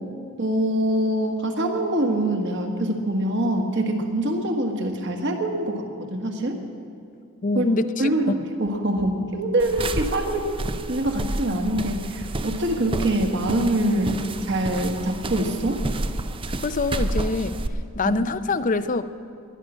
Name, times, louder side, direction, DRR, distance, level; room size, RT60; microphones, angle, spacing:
voice 1, 0.4-6.6 7.5-7.7 8.0-10.5 10.9-14.2 14.5-15.8 18.0-18.2, right 1 dB, 55° right, 3 dB, 1.6 m, -24 dB
voice 2, 7.4-8.3 16.6-17.6 18.0-19.0, left 3 dB, 35° left, 13 dB, 0.5 m, -24 dB
sound 1, 9.6-17.7, right 2 dB, 25° right, 0.5 m, -30 dB
21.5 x 10.0 x 6.3 m, 2.3 s
head